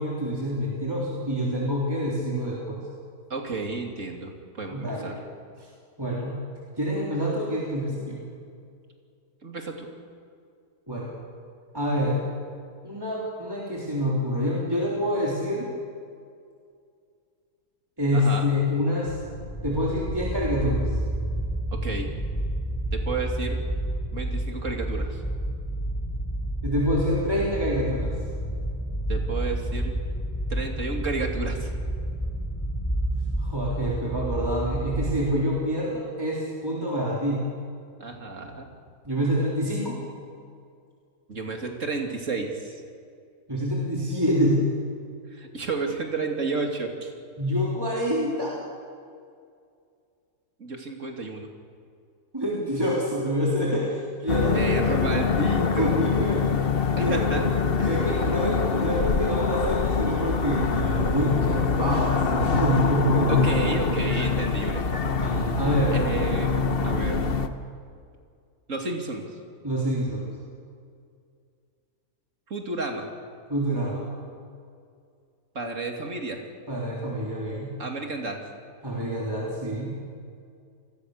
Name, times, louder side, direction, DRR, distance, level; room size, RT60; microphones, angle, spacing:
voice 1, 0.0-2.8 4.7-5.2 5.6-5.7 6.0-6.4 6.8-8.2 10.9-11.1 11.7-12.2 12.8-15.7 18.0-19.1 19.6-20.9 26.6-28.1 33.4-37.5 39.1-40.0 43.5-44.7 47.4-48.6 52.3-54.7 55.6-56.4 56.9-57.5 57.8-64.0 65.2-66.0 69.6-70.3 73.5-74.0 76.7-77.7 78.8-80.0, equal, 15° right, -4 dB, 3.5 m, -26 dB
voice 2, 3.3-5.1 9.4-9.9 18.1-18.5 21.7-22.1 22.9-23.6 24.1-25.2 29.1-29.9 30.5-31.7 38.0-38.7 41.3-42.8 45.3-47.1 50.6-51.5 54.5-56.0 57.0-58.1 63.3-64.9 65.9-66.5 66.8-67.4 68.7-69.2 72.5-73.1 75.5-76.4 77.8-78.4, right 3 dB, 50° right, 2 dB, 3.1 m, -31 dB
sound 1, 19.1-35.2, right 1 dB, 15° left, 4.4 m, -30 dB
sound 2, 54.3-67.5, left 5 dB, 40° left, 1.1 m, -24 dB
28.5 x 21.0 x 6.7 m, 2.3 s
omnidirectional pair, 1.7 m